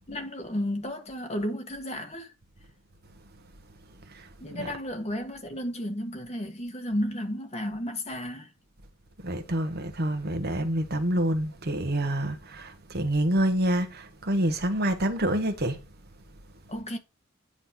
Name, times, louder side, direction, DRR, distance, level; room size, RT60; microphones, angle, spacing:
voice 1, 0.1-2.3 4.4-8.5 16.7-17.0, equal, 30° left, 1.7 m, -33 dB
voice 2, 3.9-4.7 9.2-15.9, right 1 dB, 50° right, 1.2 m, -27 dB
9.7 x 3.3 x 5.8 m
head